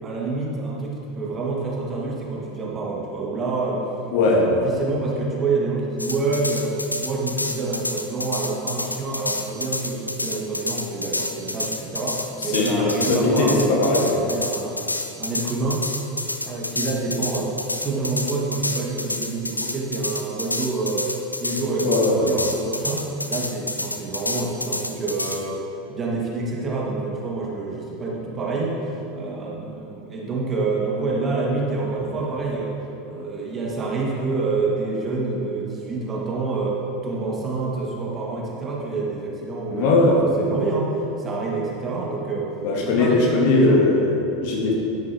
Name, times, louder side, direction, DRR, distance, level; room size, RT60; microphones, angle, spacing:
voice 1, 0.0-3.8 4.2-14.8 15.1-15.8 16.4-17.5 17.8-21.1 21.4-25.6 25.9-28.8 29.1-32.7 33.0-42.5 42.8-43.9, right 3 dB, 25° right, -3 dB, 2.1 m, -27 dB
voice 2, 4.1-4.5 12.4-14.0 21.8-22.3 39.7-40.2 42.6-44.7, left 2 dB, 50° left, -1 dB, 1.8 m, -19 dB
sound 1, 6.0-25.4, left 2 dB, 85° left, 0.6 m, -29 dB
12.0 x 10.0 x 3.1 m, 2.8 s
figure-of-eight pair, 80°, 0 cm